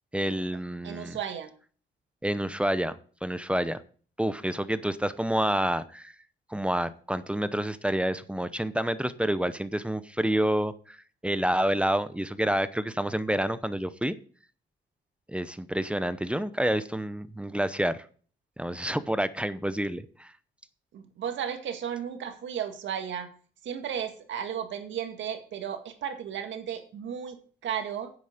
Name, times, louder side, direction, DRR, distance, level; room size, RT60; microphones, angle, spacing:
voice 1, 0.1-1.2 2.2-3.8 4.2-6.1 6.5-11.0 11.2-14.2 15.3-18.1 18.6-20.3, right 1 dB, 5° right, 14 dB, 0.7 m, -28 dB
voice 2, 0.8-1.5 20.9-23.3 23.6-28.1, right 8 dB, 70° right, 7 dB, 1.8 m, -34 dB
9.6 x 7.9 x 5.1 m, 0.43 s
cardioid pair, 90°, 20 cm